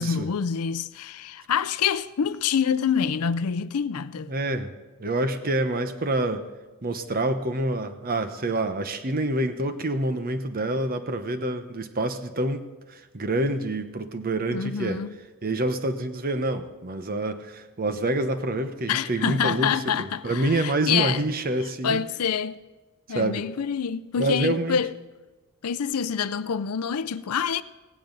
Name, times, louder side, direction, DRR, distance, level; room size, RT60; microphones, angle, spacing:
voice 1, 0.0-4.3 14.5-15.1 18.9-21.2 21.8-22.6 23.1-24.9 25.6-27.6, left 7 dB, 90° left, 0.5 m, -26 dB
voice 2, 4.3-4.7 5.0-6.5 6.8-15.0 15.4-22.0 23.1-23.5 24.2-24.8, right 2 dB, 40° right, 0.9 m, -27 dB
17.5 x 16.0 x 4.0 m
head